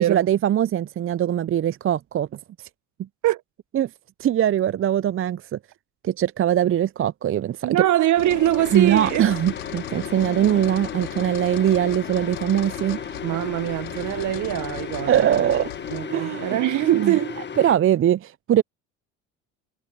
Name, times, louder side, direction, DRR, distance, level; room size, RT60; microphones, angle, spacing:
voice 1, 0.0-2.3 3.7-3.9 4.2-5.6 6.0-7.8 8.7-13.0 15.1-15.7 16.1-16.6 17.0-17.1 17.6-18.6, right 11 dB, 35° right, 0.6 m, -21 dB
voice 2, 7.6-9.3 13.2-15.4 15.9-17.4, right 14 dB, 50° right, 1.0 m, -23 dB
sound 1, 8.2-16.1, left 22 dB, 80° left, 3.1 m, -38 dB
sound 2, 8.6-17.8, left 6 dB, 30° left, 1.6 m, -35 dB
hypercardioid pair, 70°, 38 cm